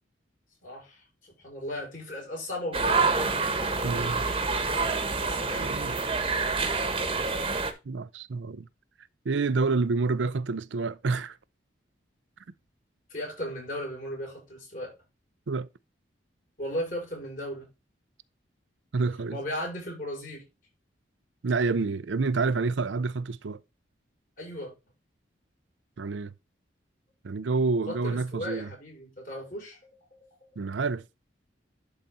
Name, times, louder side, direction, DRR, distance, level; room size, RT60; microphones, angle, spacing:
voice 1, 0.6-3.2 5.2-5.7 13.1-14.9 16.6-17.6 19.3-20.4 24.4-24.7 27.9-29.8, left 1 dB, 45° left, 6.1 m, -36 dB
sound 1, 2.7-7.7, right 4 dB, 30° right, 1.2 m, -27 dB
voice 2, 3.8-4.3 5.5-6.0 7.9-8.7 9.3-11.4 15.5-15.7 18.9-19.4 21.4-23.6 26.0-26.3 27.2-28.7 30.6-31.0, right 4 dB, 80° right, 0.5 m, -28 dB
11.5 x 4.1 x 4.2 m
head